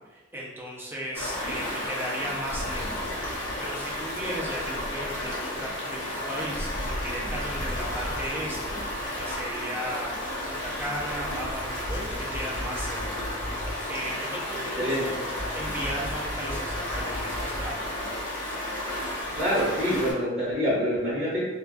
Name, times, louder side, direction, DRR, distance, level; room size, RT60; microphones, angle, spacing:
voice 1, 0.1-2.9 3.6-8.8 9.1-10.2 10.4-13.1 13.7-15.2 15.5-17.7, equal, 10° right, -5 dB, 0.4 m, -36 dB
Stream, 1.1-20.1, left 1 dB, 80° left, 0.7 m, -32 dB
sound 1, 11.8-14.1 15.4-18.0, equal, 55° right, 0.7 m, -37 dB
voice 2, 19.4-21.5, equal, 25° right, -9 dB, 0.9 m, -26 dB
2.2 x 2.2 x 2.5 m, 1.2 s
head